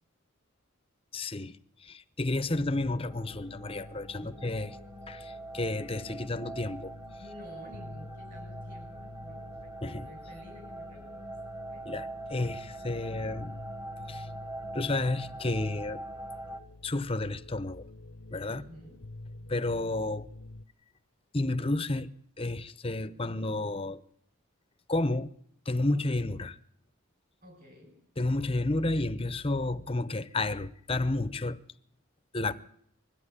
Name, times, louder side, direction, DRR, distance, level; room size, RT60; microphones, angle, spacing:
voice 1, 1.1-1.5 1.8-4.7 5.1-6.9 9.8-10.1 11.9-13.6 14.1-14.3 14.7-16.0 16.8-17.8 18.3-18.6 19.5-20.3 21.3-22.1 22.4-24.0 24.9-25.3 25.7-26.6 28.2-31.6 32.3-32.6, left 2 dB, 25° left, 0.8 m, -31 dB
sound 1, 2.5-20.7, left 2 dB, 70° left, 0.9 m, -48 dB
sound 2, 3.1-16.6, right 1 dB, 15° right, 1.7 m, -44 dB
voice 2, 7.2-9.8 10.0-11.3 11.7-12.0 18.5-19.0 27.4-28.0, equal, 40° right, 7.1 m, -51 dB
21.5 x 14.5 x 9.9 m
head